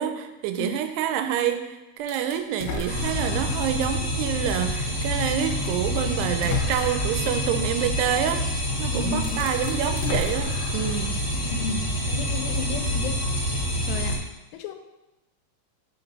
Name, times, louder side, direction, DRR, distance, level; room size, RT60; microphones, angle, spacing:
voice 1, 0.0-8.4 8.8-11.2, right 9 dB, 85° right, 8 dB, 2.6 m, -27 dB
sound 1, 2.1-3.7 4.3-4.4 5.6-5.7 6.2-7.2 8.7-8.8 9.1-11.1, left 4 dB, 75° left, 2.4 m, -33 dB
sound 2, 2.9-14.2, equal, 40° left, 1.8 m, -27 dB
voice 2, 8.9-9.5 11.4-13.2 13.9-14.2 14.5-14.7, left 4 dB, 90° left, 7 dB, 2.7 m, -32 dB
5.8 x 5.7 x 4.0 m, 0.99 s
omnidirectional pair, 4.7 m